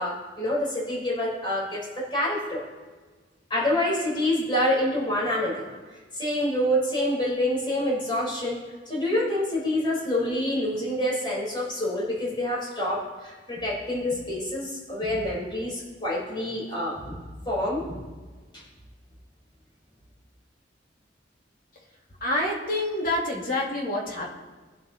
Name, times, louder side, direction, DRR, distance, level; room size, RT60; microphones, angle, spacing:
voice 1, 0.0-2.6 3.5-5.7 6.2-17.2 17.5-17.8, left 1 dB, 25° left, -5 dB, 4.0 m, -27 dB
voice 2, 22.2-24.3, left 1 dB, 50° left, -1 dB, 2.1 m, -27 dB
20.5 x 7.9 x 2.9 m, 1.4 s
head